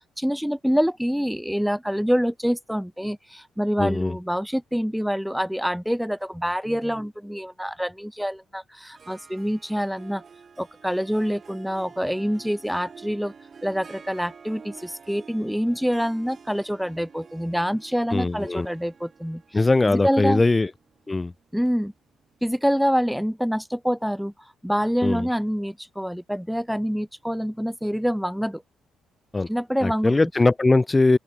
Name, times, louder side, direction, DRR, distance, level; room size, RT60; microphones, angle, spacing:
voice 1, 0.2-10.2 10.6-13.3 13.6-19.4 19.9-20.4 21.5-21.9 22.4-24.3 24.6-28.6 29.5-30.1, equal, ahead, 0.6 m, -26 dB
voice 2, 3.8-4.2 18.1-18.7 19.5-20.7 21.1-21.3 25.0-25.3 29.3-29.5 29.8-31.2, left 2 dB, 25° left, 1.1 m, -20 dB
Harp, 8.9-22.5, right 5 dB, 45° right, 4.0 m, -48 dB
open air
hypercardioid pair, 55°, 0 cm